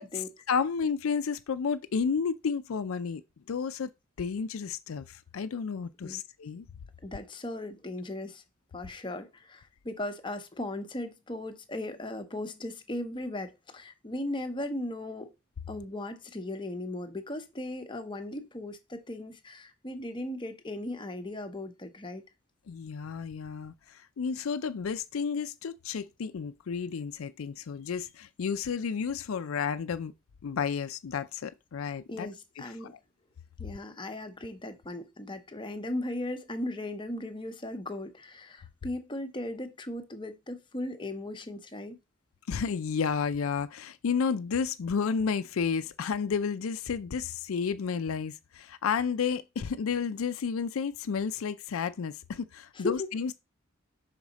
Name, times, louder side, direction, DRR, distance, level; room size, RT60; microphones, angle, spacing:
voice 1, 0.0-3.2 3.5-3.9 4.2-6.7 22.7-30.1 30.4-32.3 32.6-33.0 42.5-53.3, left 6 dB, 90° left, 0.4 m, -31 dB
voice 2, 7.0-8.4 8.7-15.3 15.7-22.2 32.1-32.9 33.6-42.0 52.7-53.1, left 1 dB, 25° left, 0.8 m, -37 dB
5.8 x 4.8 x 4.0 m
head